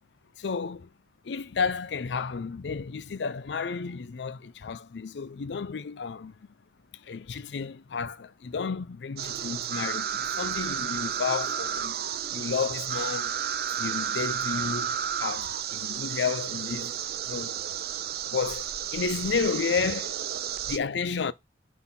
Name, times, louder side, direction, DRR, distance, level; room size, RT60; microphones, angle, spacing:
voice 1, 0.4-0.9 1.2-6.4 6.9-12.0 12.3-13.4 13.7-16.9 17.3-17.6 18.2-18.7 18.9-20.2 20.7-21.3, left 5 dB, 85° left, 0.5 m, -32 dB
sound 1, 9.2-20.8, right 9 dB, 60° right, 0.5 m, -32 dB
5.9 x 4.0 x 5.7 m
head